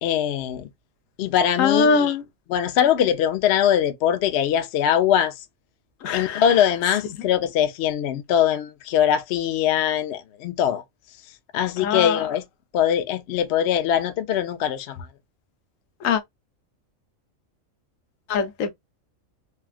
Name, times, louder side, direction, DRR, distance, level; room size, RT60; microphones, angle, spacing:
voice 1, 0.0-0.7 1.2-2.1 2.5-5.3 6.1-10.8 11.5-12.4 12.7-15.0, left 9 dB, 65° left, 0.7 m, -22 dB
voice 2, 1.6-2.2 6.0-6.4 11.8-12.2 16.0-16.2 18.3-18.7, left 5 dB, 80° left, 1.1 m, -22 dB
3.4 x 2.3 x 2.3 m
omnidirectional pair, 1.4 m